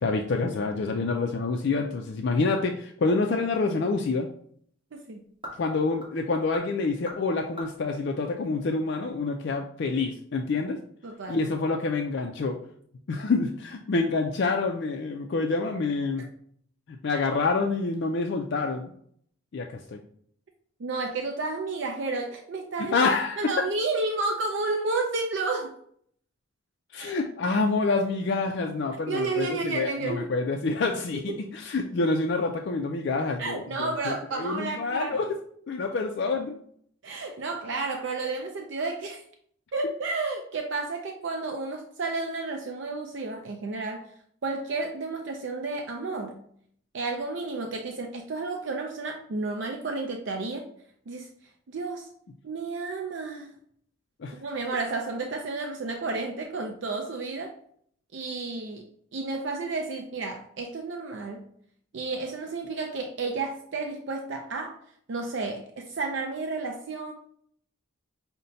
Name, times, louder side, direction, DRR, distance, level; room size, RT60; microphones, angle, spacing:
voice 1, 0.0-4.3 5.6-10.8 11.3-12.6 13.1-16.2 16.9-18.9 19.5-20.0 22.8-23.5 26.9-35.4 35.7-36.5 54.2-54.4, left 3 dB, 55° left, 2 dB, 0.3 m, -27 dB
sound 1, 4.2-9.1, left 1 dB, 25° right, 1.2 m, -47 dB
voice 2, 4.9-5.3 11.0-11.4 16.2-16.3 17.1-17.2 20.8-23.1 23.4-25.8 27.0-27.1 29.1-30.3 31.3-31.5 33.4-35.2 37.0-39.2 39.7-44.0 44.4-46.4 46.9-50.6 51.1-51.3 51.7-52.1 52.4-53.5 54.4-57.5 58.1-61.4 61.9-64.8 65.1-67.1, right 3 dB, 55° right, 3 dB, 0.4 m, -31 dB
5.4 x 2.1 x 3.9 m, 0.63 s
head